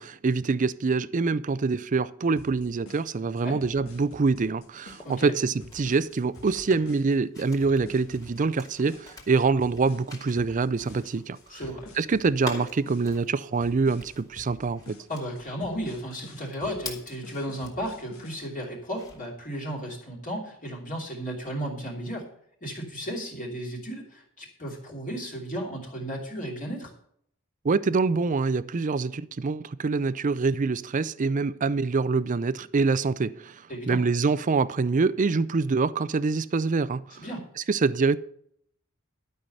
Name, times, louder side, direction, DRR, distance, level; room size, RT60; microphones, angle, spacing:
voice 1, 0.0-11.4 12.0-15.0 27.6-37.0 37.7-38.2, right 4 dB, 40° right, 0.4 m, -25 dB
sound 1, 2.4-18.4, left 2 dB, 85° left, 2.2 m, -50 dB
sound 2, 4.6-18.0 18.4-19.4, left 2 dB, 15° left, 2.5 m, -46 dB
voice 2, 11.5-11.9 15.1-22.3 22.6-26.9 33.7-34.0 37.1-37.4, equal, 40° left, 2.8 m, -34 dB
12.0 x 5.6 x 7.8 m
head